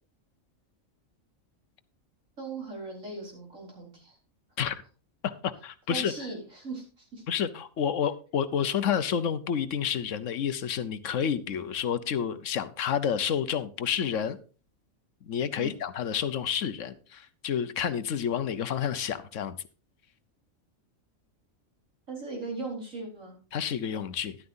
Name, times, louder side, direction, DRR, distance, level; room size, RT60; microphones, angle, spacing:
voice 1, 2.4-4.2 5.9-7.2 15.6-15.7 22.1-23.4, right 3 dB, 75° right, -1 dB, 4.7 m, -38 dB
voice 2, 5.2-6.1 7.3-14.4 15.2-19.6 23.5-24.4, left 8 dB, 70° left, 12 dB, 1.1 m, -29 dB
13.0 x 11.5 x 2.6 m, 0.36 s
omnidirectional pair, 1.4 m